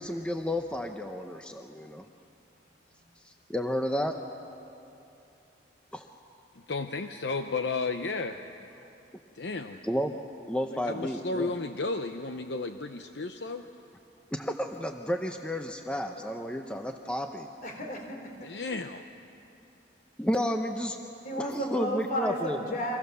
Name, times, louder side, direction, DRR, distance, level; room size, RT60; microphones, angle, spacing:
voice 1, 0.0-2.0 3.2-4.1 5.9-6.1 9.8-10.1 10.5-11.5 14.3-17.5 20.2-21.0 21.4-22.6, equal, 5° left, 0.8 m, -31 dB
voice 2, 6.5-8.9 9.3-9.8 10.7-13.7 18.4-19.0, left 3 dB, 65° left, 0.8 m, -33 dB
voice 3, 17.6-18.5 21.2-23.0, equal, 45° left, 3.9 m, -33 dB
30.0 x 24.5 x 6.9 m
head